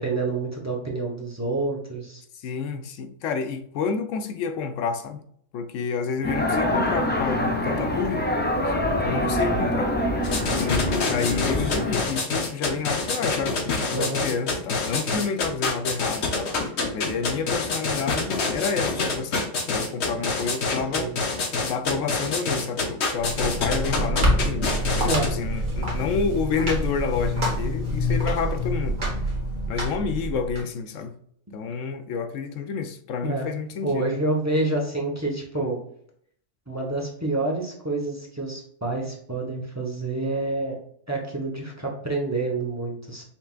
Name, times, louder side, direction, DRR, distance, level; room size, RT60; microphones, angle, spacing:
voice 1, 0.0-2.2 9.5-9.7 13.9-14.3 20.9-21.1 25.1-25.3 33.2-33.5 33.8-35.8 36.7-40.8 41.1-43.2, right 2 dB, 15° right, 0.9 m, -28 dB
voice 2, 2.3-5.2 5.5-8.3 8.6-8.8 9.0-9.9 10.6-16.5 16.9-21.1 21.7-29.0 29.7-31.2 31.5-34.1, left 5 dB, 85° left, 1.0 m, -29 dB
sound 1, 6.2-12.1, left 1 dB, 15° left, 0.4 m, -25 dB
sound 2, 10.2-25.3, left 3 dB, 65° left, 1.2 m, -26 dB
sound 3, 23.1-30.6, equal, 40° right, 1.6 m, -26 dB
5.7 x 3.4 x 2.4 m
omnidirectional pair, 1.3 m